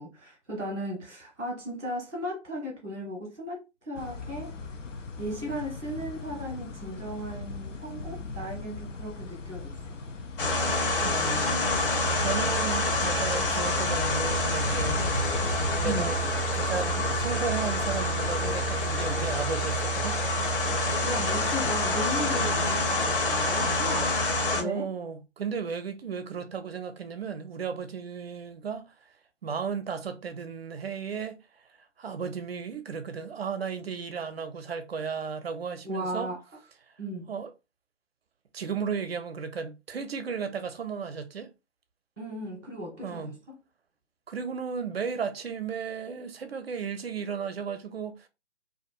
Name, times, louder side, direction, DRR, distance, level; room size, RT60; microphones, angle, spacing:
voice 1, 0.0-4.6 5.2-10.0 15.8-16.2 20.8-24.2 24.5-24.9 35.8-36.4 37.0-37.3 42.2-43.6, equal, ahead, 0.5 m, -36 dB
sound 1, 4.0-19.5, left 4 dB, 90° left, 0.6 m, -38 dB
sound 2, 10.4-24.6, left 1 dB, 50° left, 0.7 m, -27 dB
voice 2, 11.0-11.7 12.2-15.3 15.8-16.2 16.5-20.2 24.5-28.9 29.4-31.4 32.0-36.3 37.3-37.5 38.5-41.5 43.0-43.3 44.3-48.3, right 6 dB, 55° right, 0.5 m, -34 dB
2.5 x 2.3 x 2.6 m
figure-of-eight pair, 140°, 36 cm